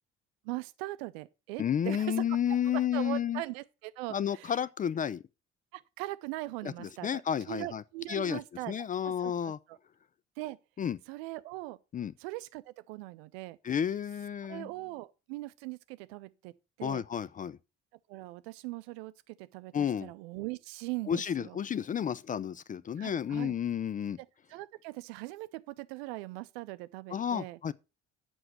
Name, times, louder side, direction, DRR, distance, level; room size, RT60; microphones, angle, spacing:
voice 1, 0.4-2.4 2.6-4.6 5.7-7.2 7.5-9.8 10.4-10.6 11.1-11.8 12.2-13.6 14.4-16.5 16.8-17.0 18.1-21.6 23.0-23.5 24.5-27.6, right 19 dB, 65° right, 0.6 m, -40 dB
voice 2, 1.6-3.4 4.1-5.2 6.6-7.8 8.1-8.4 8.7-9.6 10.8-11.0 11.9-12.1 13.6-14.7 16.8-17.6 19.7-20.1 21.1-24.2 27.1-27.7, left 9 dB, 25° left, 0.4 m, -31 dB
7.8 x 6.2 x 5.6 m
figure-of-eight pair, 50°, 33 cm